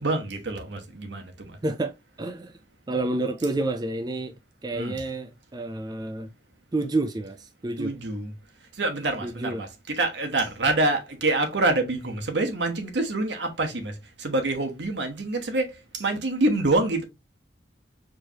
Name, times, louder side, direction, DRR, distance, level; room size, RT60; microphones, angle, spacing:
voice 1, 0.0-1.6 4.7-5.0 7.8-8.3 8.8-17.0, right 2 dB, 75° right, 1.1 m, -26 dB
voice 2, 1.6-2.5 2.9-4.3 4.6-6.3 6.7-7.9 9.2-9.7, right 2 dB, 20° right, 0.4 m, -29 dB
4.7 x 3.0 x 2.8 m
head